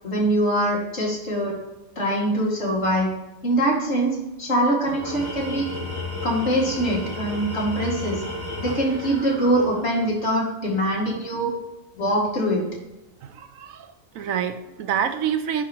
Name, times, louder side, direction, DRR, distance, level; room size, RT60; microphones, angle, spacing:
voice 1, 0.0-1.6 2.0-3.1 3.4-5.7 6.2-8.2 8.6-11.5 12.0-12.7, right 1 dB, 55° left, -3 dB, 2.4 m, -23 dB
Tools, 4.9-10.2, left 2 dB, 15° right, 2.2 m, -33 dB
voice 2, 13.2-15.6, right 8 dB, 75° right, 9 dB, 1.1 m, -27 dB
5.6 x 4.8 x 6.0 m, 0.95 s
omnidirectional pair, 1.4 m